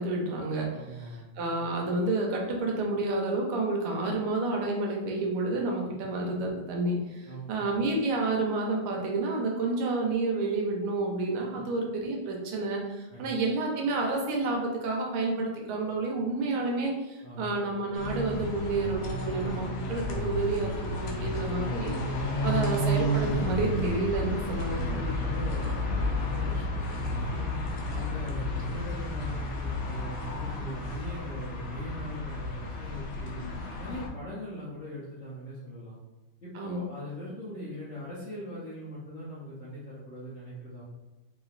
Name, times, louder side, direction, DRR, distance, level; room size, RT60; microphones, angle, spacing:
voice 1, 0.0-21.9 22.4-25.1 36.5-36.8, right 2 dB, 80° right, 0 dB, 1.6 m, -30 dB
voice 2, 0.7-1.2 7.2-7.5 11.5-11.6 13.1-13.2 17.2-17.4 24.8-27.5 27.9-33.4 33.8-36.0 36.4-40.8, equal, 55° left, -10 dB, 0.8 m, -41 dB
sound 1, 17.9-34.1, left 1 dB, 75° left, 1.5 m, -31 dB
4.3 x 3.0 x 2.4 m, 1.1 s
omnidirectional pair, 2.4 m